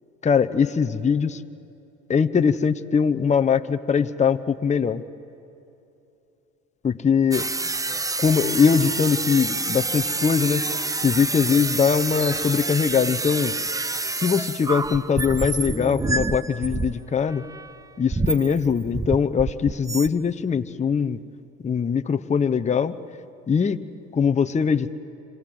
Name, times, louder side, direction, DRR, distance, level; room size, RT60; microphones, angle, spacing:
voice 1, 0.2-1.4 2.1-5.0 6.8-7.5 8.2-10.6 11.0-13.5 14.1-17.4 18.0-21.2 21.6-23.0 23.5-23.8 24.1-24.9, left 6 dB, 20° left, 8 dB, 0.9 m, -21 dB
sound 1, 7.3-17.0 17.3-17.8 18.1-20.1, right 3 dB, 10° right, 0.7 m, -28 dB
26.5 x 26.0 x 7.8 m, 2.8 s
supercardioid pair, 85°, 35 cm